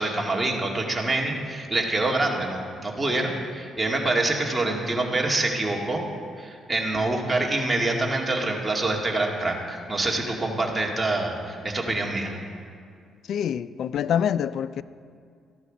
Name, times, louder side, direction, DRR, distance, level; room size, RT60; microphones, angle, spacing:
voice 1, 0.0-6.0 6.4-12.4, right 2 dB, 15° right, 2.2 m, -26 dB
voice 2, 13.3-14.8, left 9 dB, 70° left, 0.4 m, -26 dB
14.0 x 11.0 x 5.1 m
cardioid pair, 90°, 0 cm